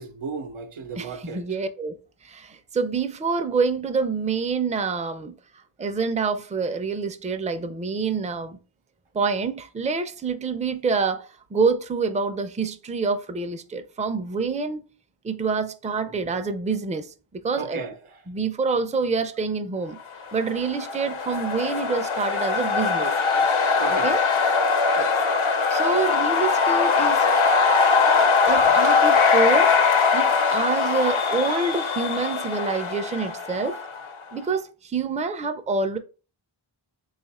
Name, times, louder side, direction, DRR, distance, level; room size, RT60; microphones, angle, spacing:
voice 1, 0.0-1.4 17.6-18.0 23.4-24.1 28.6-28.7, right 4 dB, 90° right, 0.7 m, -35 dB
voice 2, 1.0-1.9 2.2-5.3 5.8-8.6 9.1-14.8 15.2-17.8 18.3-20.0 20.3-23.1 23.9-24.2 25.0-25.1 25.7-27.4 28.1-29.7 30.1-33.8 34.3-36.0, right 4 dB, 15° right, 0.4 m, -27 dB
sound 1, 20.4-34.1, left 5 dB, 70° left, 0.7 m, -21 dB
3.4 x 2.4 x 4.1 m
wide cardioid pair, 50°, 49 cm